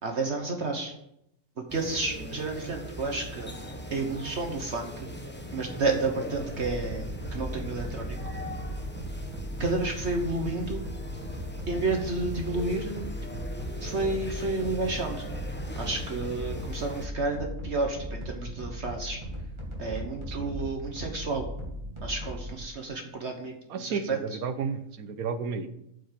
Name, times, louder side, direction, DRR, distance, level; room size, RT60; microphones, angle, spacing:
voice 1, 0.0-0.9 1.6-5.1 5.5-8.2 9.6-10.9 11.7-13.1 13.8-15.2 15.8-19.2 19.8-21.5 22.0-24.2, right 3 dB, 50° right, 3 dB, 1.3 m, -31 dB
sound 1, 1.7-17.1, equal, 10° left, 0.8 m, -40 dB
sound 2, 6.3-22.6, equal, 20° right, 2.1 m, -38 dB
voice 2, 23.7-25.7, right 5 dB, 80° right, 10 dB, 1.3 m, -32 dB
8.3 x 5.8 x 7.4 m, 0.78 s
omnidirectional pair, 1.5 m